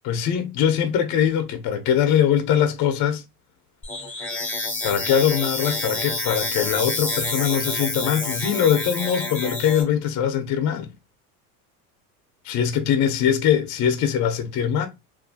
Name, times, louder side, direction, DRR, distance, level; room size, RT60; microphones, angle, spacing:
voice 1, 0.0-3.2 4.2-4.3 4.8-10.9 12.4-14.9, left 9 dB, 40° left, 0.5 m, -22 dB
sound 1, 3.8-9.8, left 2 dB, 5° left, 0.6 m, -28 dB
2.4 x 2.1 x 2.6 m
supercardioid pair, 100°, 45 cm